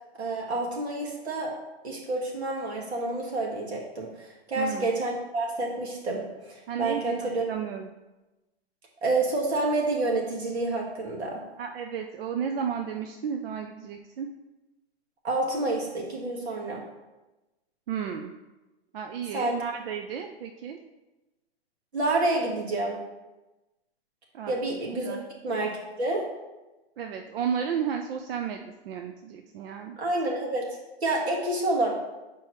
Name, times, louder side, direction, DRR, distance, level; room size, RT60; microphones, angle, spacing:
voice 1, 0.2-1.5 1.8-7.5 9.0-11.4 15.2-16.8 19.3-19.6 21.9-23.0 24.5-25.2 25.4-26.2 30.0-30.7 31.0-31.9, right 2 dB, 85° right, -2 dB, 1.9 m, -28 dB
voice 2, 4.6-4.9 6.7-7.9 11.6-14.3 17.9-18.3 18.9-20.8 24.3-24.5 25.0-25.3 27.0-30.0, right 7 dB, 65° right, 4 dB, 0.6 m, -33 dB
7.0 x 4.5 x 3.1 m, 1.1 s
hypercardioid pair, 125°, 32 cm